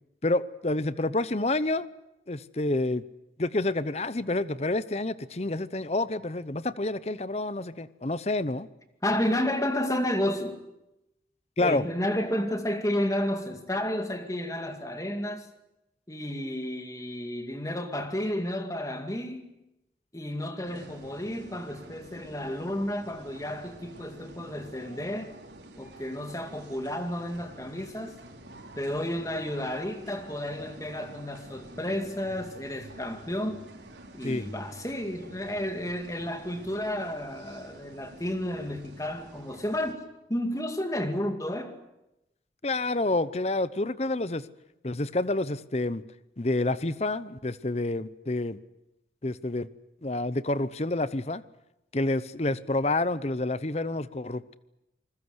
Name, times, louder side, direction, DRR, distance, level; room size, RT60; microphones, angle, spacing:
voice 1, 0.2-1.9 2.3-3.0 3.4-8.7 11.6-11.8 34.2-34.4 42.6-44.5 44.8-46.0 46.4-48.6 49.2-49.7 50.0-51.4 51.9-54.5, left 2 dB, 35° left, 0.8 m, -28 dB
voice 2, 9.0-10.6 11.6-15.5 16.1-19.5 20.1-25.3 25.8-28.2 28.8-33.6 34.1-40.0 40.3-41.8, left 1 dB, 20° left, 2.3 m, -31 dB
sound 1, 20.6-39.9, right 1 dB, 85° right, 4.7 m, -48 dB
27.5 x 20.5 x 8.1 m
head